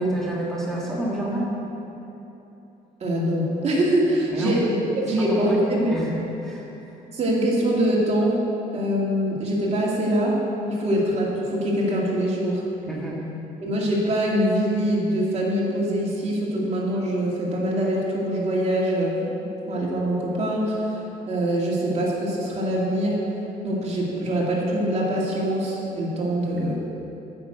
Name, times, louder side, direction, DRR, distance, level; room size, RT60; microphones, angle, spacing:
voice 1, 0.0-1.5 4.3-4.6 5.2-6.1 6.4-6.7 12.9-13.2, right 1 dB, ahead, -6 dB, 1.7 m, -28 dB
voice 2, 3.0-5.9 7.1-8.4 8.7-10.4 10.7-12.6 13.6-19.2 19.7-21.0 21.3-23.2 23.6-26.8, right 1 dB, 40° right, -4 dB, 2.4 m, -23 dB
8.8 x 6.4 x 7.8 m, 3.0 s
cardioid pair, 110°, 17 cm